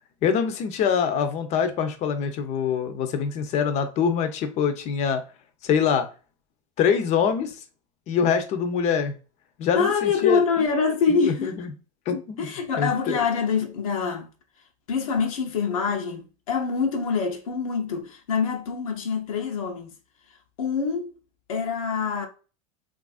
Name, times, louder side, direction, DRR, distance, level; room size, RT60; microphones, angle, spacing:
voice 1, 0.2-5.2 5.6-6.1 6.8-7.5 8.1-9.1 9.6-10.4 11.1-11.7 12.1-12.5 12.8-13.2, left 7 dB, 40° left, 0.6 m, -24 dB
voice 2, 9.7-11.5 12.4-14.3 14.9-19.9 20.6-21.1 21.5-22.3, left 5 dB, 85° left, 0.8 m, -25 dB
3.3 x 2.5 x 2.4 m
supercardioid pair, 115°, 17 cm